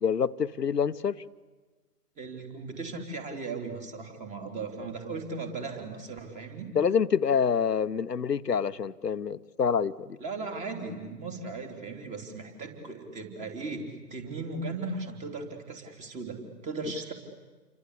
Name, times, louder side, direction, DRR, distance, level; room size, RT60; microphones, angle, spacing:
voice 1, 0.0-1.2 6.7-10.2, left 6 dB, 90° left, 1.0 m, -27 dB
voice 2, 2.2-6.7 10.2-17.1, right 3 dB, 15° right, 3.6 m, -37 dB
29.0 x 24.5 x 8.4 m
figure-of-eight pair, 135°, 47 cm